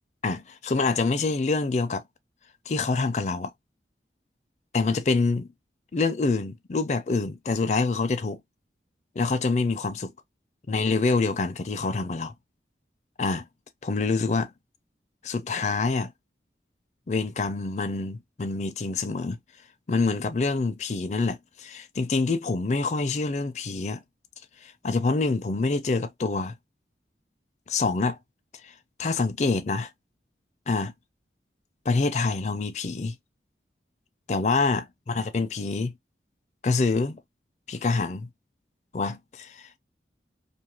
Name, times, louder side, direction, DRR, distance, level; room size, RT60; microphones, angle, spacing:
voice 1, 0.2-2.0 2.7-3.5 4.7-5.5 5.9-8.4 9.2-10.1 10.7-12.3 13.2-13.5 13.8-14.5 15.2-16.1 17.1-19.4 19.9-24.0 24.6-26.5 27.7-28.2 28.6-28.7 29.0-29.9 30.7-30.9 31.9-33.2 34.3-35.9 36.6-37.2 37.7-38.3 38.9-39.8, left 3 dB, 40° left, 0.4 m, -26 dB
2.7 x 2.4 x 2.9 m
head